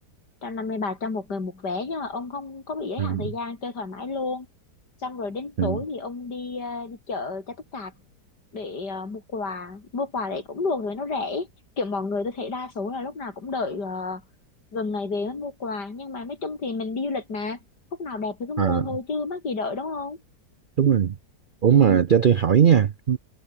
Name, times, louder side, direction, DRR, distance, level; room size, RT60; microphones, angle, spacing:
voice 1, 0.4-4.5 5.0-7.9 8.5-11.5 11.8-14.2 14.7-17.6 18.0-20.2 21.7-22.0, left 3 dB, 80° left, 4.5 m, -31 dB
voice 2, 3.0-3.3 5.6-5.8 18.6-18.9 20.8-21.2 21.6-23.2, right 8 dB, 80° right, 0.4 m, -19 dB
omnidirectional pair, 1.8 m